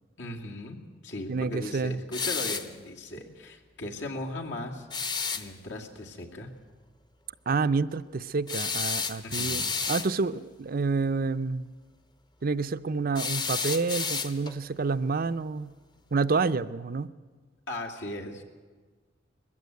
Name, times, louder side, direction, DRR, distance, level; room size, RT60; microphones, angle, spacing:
voice 1, 0.2-5.1 5.3-6.5 9.2-9.7 17.7-18.4, left 1 dB, 75° left, 0 dB, 2.6 m, -38 dB
voice 2, 1.3-2.0 7.5-11.7 12.4-15.7 16.1-17.1, right 4 dB, 50° right, 13 dB, 0.5 m, -28 dB
sound 1, 2.1-2.7 4.9-5.5 8.5-10.1 13.2-14.6, left 5 dB, 25° left, 0.9 m, -31 dB
21.0 x 15.0 x 9.4 m, 1.4 s
head